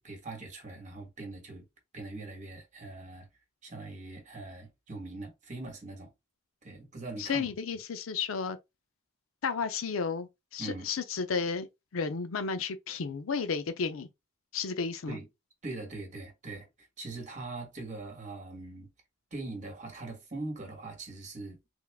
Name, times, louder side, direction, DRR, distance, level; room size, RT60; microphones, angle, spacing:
voice 1, 0.0-1.7 1.9-3.3 3.6-6.1 6.6-7.5 10.6-10.9 15.1-15.3 15.6-16.7 17.0-18.9 19.3-21.6, right 2 dB, 35° right, 1.4 m, -41 dB
voice 2, 7.2-8.6 9.4-11.7 11.9-14.1 14.5-15.2, left 5 dB, 85° left, 0.5 m, -32 dB
3.6 x 2.4 x 3.5 m
head